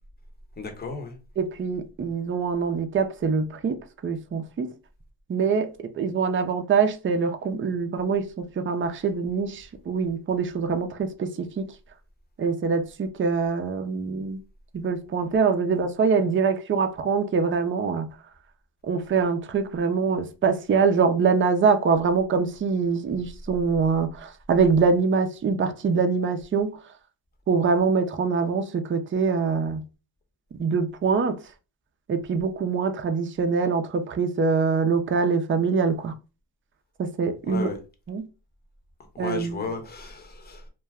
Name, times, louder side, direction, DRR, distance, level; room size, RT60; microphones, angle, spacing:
voice 1, 0.6-1.2 37.5-37.8 39.1-40.7, left 3 dB, 20° left, 0.8 m, -34 dB
voice 2, 1.4-3.8 4.0-4.7 5.3-11.7 12.4-14.4 14.7-18.1 18.9-26.8 27.5-29.8 30.5-31.4 32.1-36.1 37.0-37.7 38.1-38.2 39.2-39.6, right 5 dB, 25° right, 0.5 m, -24 dB
2.3 x 2.1 x 3.4 m
supercardioid pair, 65°, 48 cm